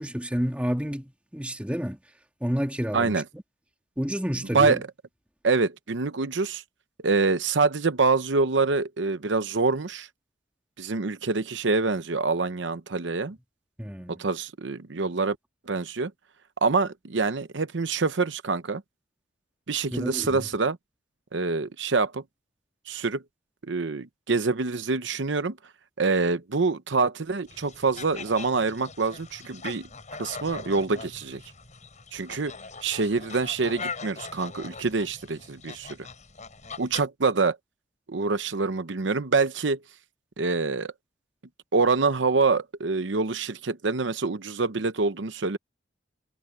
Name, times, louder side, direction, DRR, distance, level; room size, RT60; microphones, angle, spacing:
voice 1, 0.0-2.0 2.4-3.2 4.0-4.8 13.8-14.2 19.9-20.5, equal, 5° right, 1.9 m, -30 dB
voice 2, 5.4-6.6 7.0-10.1 10.8-13.4 14.1-15.4 15.7-16.1 16.6-18.8 19.7-20.8 21.3-22.2 22.9-23.2 23.7-25.6 26.0-29.9 30.2-31.4 32.1-32.5 32.8-36.0 36.8-37.6 38.1-39.8 40.4-40.9 41.7-45.6, right 4 dB, 70° right, 0.8 m, -25 dB
sound 1, 27.5-37.1, left 4 dB, 40° left, 6.8 m, -41 dB
head